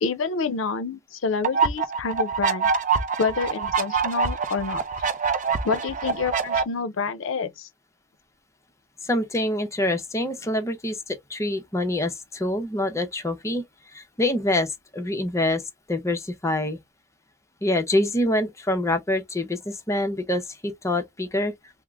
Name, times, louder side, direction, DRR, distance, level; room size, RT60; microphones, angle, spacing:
voice 1, 0.0-2.7 3.2-4.8 5.6-7.7, left 5 dB, 70° left, 0.5 m, -28 dB
sound 1, 1.4-6.6, right 5 dB, 40° right, 0.4 m, -25 dB
voice 2, 9.0-13.6 13.9-15.6 15.9-16.8 17.6-21.5, left 1 dB, 15° left, 0.6 m, -26 dB
3.5 x 2.0 x 3.3 m
head